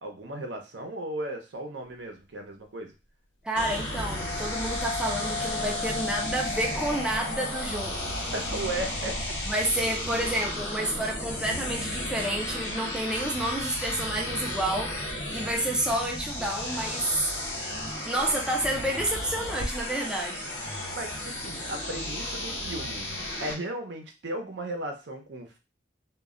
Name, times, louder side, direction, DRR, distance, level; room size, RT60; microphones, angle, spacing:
voice 1, 0.0-2.9 8.3-9.2 20.9-23.1 23.4-25.6, right 1 dB, 75° right, 0.6 m, -36 dB
voice 2, 3.4-8.2 9.4-17.3 18.0-20.5, right 1 dB, 5° right, 0.3 m, -30 dB
sound 1, 3.6-23.5, left 1 dB, 65° left, 1.1 m, -34 dB
sound 2, 3.7-12.9, left 4 dB, 90° left, 0.5 m, -39 dB
2.2 x 2.0 x 3.6 m
head